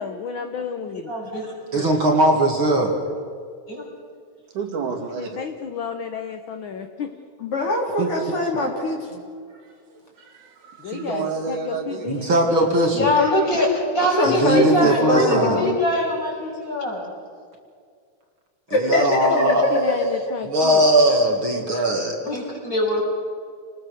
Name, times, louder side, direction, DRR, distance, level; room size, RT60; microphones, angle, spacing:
voice 1, 0.0-1.1 4.9-7.1 10.8-12.7 18.9-20.8, left 7 dB, 60° left, 7 dB, 1.3 m, -31 dB
voice 2, 1.1-1.4 1.7-1.9 3.7-3.8 12.9-13.7 13.9-17.1 22.2-23.0, left 1 dB, 25° left, -2 dB, 6.3 m, -23 dB
voice 3, 1.7-2.9 8.0-8.1 12.1-13.1 14.2-15.7 18.7-19.8 20.4-22.2, right 1 dB, 45° right, 1 dB, 2.8 m, -19 dB
voice 4, 4.5-5.4 9.5-12.1, right 5 dB, 80° right, 3 dB, 3.9 m, -31 dB
voice 5, 7.4-9.2 14.0-15.8 18.7-19.3, left 2 dB, 45° left, 0 dB, 4.2 m, -23 dB
28.5 x 20.0 x 6.6 m, 2.1 s
omnidirectional pair, 3.5 m